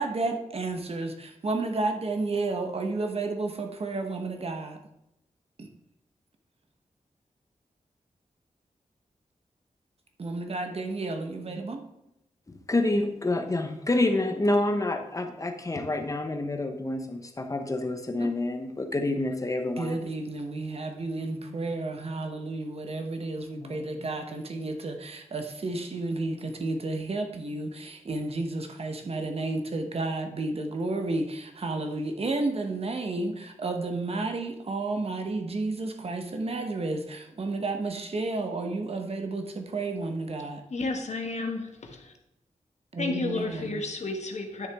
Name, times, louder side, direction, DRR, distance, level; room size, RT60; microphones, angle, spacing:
voice 1, 0.0-4.8 5.6-5.7 10.2-11.8 18.2-18.3 19.8-40.6 42.9-43.8, right 2 dB, 50° right, 5 dB, 0.9 m, -31 dB
voice 2, 12.5-20.0 21.3-21.5 23.6-23.9, left 2 dB, 25° left, 6 dB, 0.8 m, -28 dB
voice 3, 40.7-42.1 43.0-44.7, left 3 dB, 60° left, 4 dB, 1.2 m, -32 dB
10.5 x 6.4 x 3.5 m, 0.86 s
wide cardioid pair, 155°, 13 cm